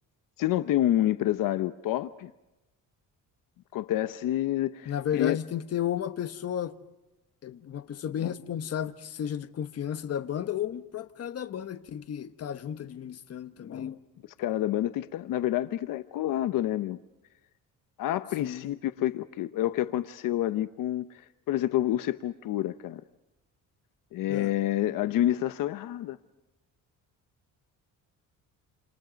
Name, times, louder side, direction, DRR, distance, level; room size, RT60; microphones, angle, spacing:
voice 1, 0.4-2.3 3.7-5.4 14.4-17.0 18.0-23.0 24.1-26.2, left 13 dB, 75° left, 0.9 m, -28 dB
voice 2, 4.9-6.7 7.4-14.0 18.4-18.7 24.3-24.5, left 9 dB, 50° left, 1.3 m, -33 dB
29.0 x 28.0 x 5.2 m
cardioid pair, 140°, 33 cm